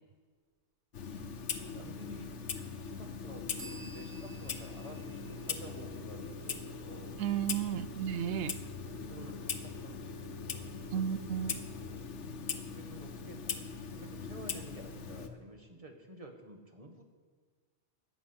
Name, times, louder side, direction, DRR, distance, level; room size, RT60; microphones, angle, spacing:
Clock, 0.9-15.3, left 6 dB, 70° left, 1.2 m, -41 dB
voice 1, 1.0-1.4 1.7-7.1 7.9-8.1 8.8-11.2 11.8-12.0 12.5-17.0, right 1 dB, 30° right, 3 dB, 1.5 m, -51 dB
sound 1, 3.6-7.1, right 3 dB, 65° right, 1.3 m, -54 dB
sound 2, 4.8-11.9, right 4 dB, 25° left, 1.4 m, -54 dB
voice 2, 7.2-8.6 10.9-11.6, right 9 dB, 80° right, 14 dB, 1.0 m, -33 dB
14.0 x 6.1 x 9.6 m, 1.6 s
omnidirectional pair, 1.3 m